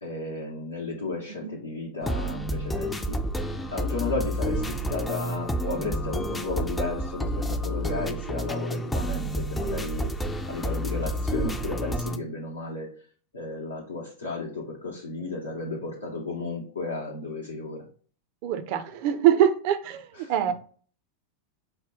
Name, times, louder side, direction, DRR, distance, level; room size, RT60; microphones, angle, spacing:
voice 1, 0.0-3.2 3.7-10.1 10.5-12.9 13.3-17.9 20.2-20.3, left 3 dB, 75° left, -3 dB, 0.8 m, -33 dB
sound 1, 2.0-12.2, equal, 10° left, 0.4 m, -29 dB
voice 2, 18.4-20.5, right 10 dB, 45° right, 9 dB, 0.5 m, -23 dB
5.0 x 2.2 x 3.5 m, 0.43 s
figure-of-eight pair, 90°, 0 cm